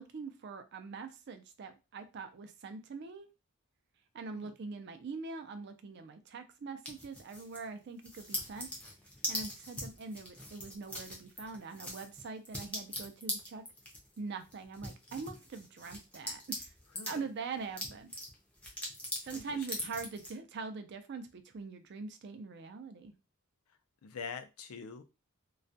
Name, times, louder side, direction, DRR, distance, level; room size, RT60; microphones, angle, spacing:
voice 1, 0.0-3.3 4.1-8.7 9.3-13.6 14.2-16.7 17.1-18.1 19.2-23.1, right 4 dB, 50° right, 8 dB, 0.4 m, -43 dB
sound 1, 6.8-7.7 8.0-17.2 17.6-20.3, left 1 dB, 5° left, 0.5 m, -41 dB
voice 2, 19.3-19.7 24.0-25.0, left 5 dB, 85° left, 9 dB, 0.4 m, -44 dB
2.3 x 2.1 x 2.6 m, 0.27 s
head